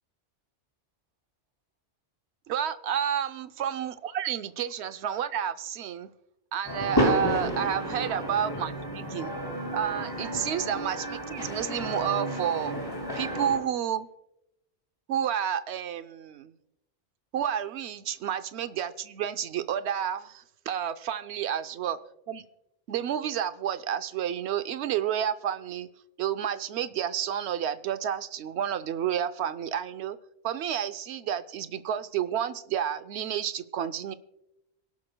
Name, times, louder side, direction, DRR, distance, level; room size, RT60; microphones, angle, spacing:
voice 1, 2.5-6.1 6.5-9.3 9.7-12.7 13.2-14.1 15.1-16.5 17.3-22.0 22.3-22.4 22.9-25.9 26.2-30.2 30.4-34.1, right 9 dB, 75° right, 11 dB, 0.9 m, -30 dB
sound 1, 6.6-13.6, equal, 20° left, 2.5 m, -31 dB
26.5 x 11.5 x 2.2 m, 0.86 s
omnidirectional pair, 1.1 m